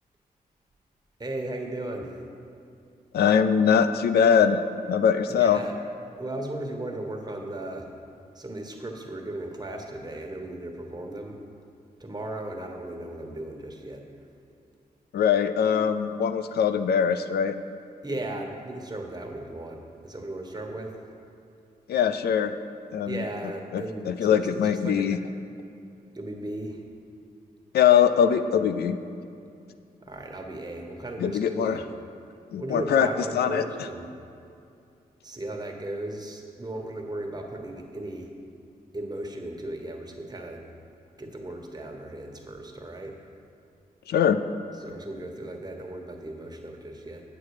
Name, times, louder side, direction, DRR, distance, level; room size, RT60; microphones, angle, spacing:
voice 1, 1.2-2.2 5.3-5.7 6.2-7.9 8.3-11.4 12.0-14.1 18.0-21.0 23.1-25.1 26.1-26.8 30.0-31.8 32.6-34.1 35.2-38.3 38.9-40.6 41.2-43.3 44.8-47.2, right 1 dB, 25° right, 2 dB, 1.3 m, -36 dB
voice 2, 3.1-4.6 4.9-5.6 15.1-17.6 21.9-22.5 22.9-23.2 23.7-25.2 27.7-29.0 31.2-31.8 32.5-33.1 33.3-33.6 44.1-44.4, left 8 dB, 85° left, 10 dB, 0.4 m, -22 dB
8.1 x 7.7 x 4.9 m, 2.5 s
cardioid pair, 55°, 16 cm